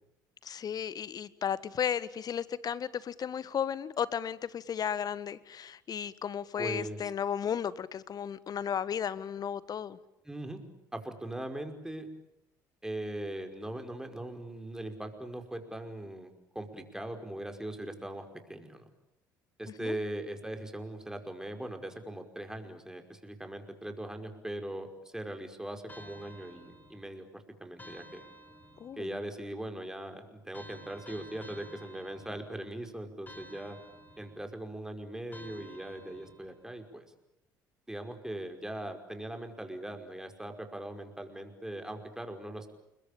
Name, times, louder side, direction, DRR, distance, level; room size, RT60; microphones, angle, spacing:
voice 1, 0.4-10.0 19.8-20.0 28.8-29.1, left 8 dB, 40° left, 18 dB, 1.5 m, -34 dB
voice 2, 6.6-7.0 10.2-10.6 10.9-12.1 12.8-18.8 19.6-28.2 29.0-33.8 34.2-37.1 37.9-42.7, right 1 dB, 5° right, 5 dB, 5.3 m, -40 dB
sound 1, 25.9-27.2 27.8-29.1 30.5-32.7 33.3-34.6 35.3-36.6, equal, 15° left, 7.2 m, -52 dB
29.0 x 22.5 x 8.8 m, 0.86 s
figure-of-eight pair, 55°, 10 cm